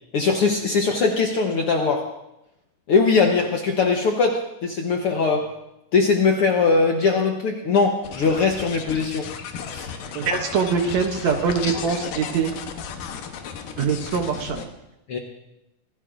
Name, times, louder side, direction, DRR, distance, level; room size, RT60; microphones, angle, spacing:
voice 1, 0.1-2.1 2.9-5.5 5.9-9.3 9.7-9.8 15.1-15.2, left 4 dB, 65° left, 2 dB, 1.5 m, -21 dB
sound 1, 8.0-14.7, left 6 dB, 85° left, 2.7 m, -34 dB
voice 2, 10.2-12.6 13.8-14.7, right 6 dB, 70° right, 5 dB, 2.0 m, -23 dB
25.0 x 15.5 x 2.6 m, 0.89 s
omnidirectional pair, 3.7 m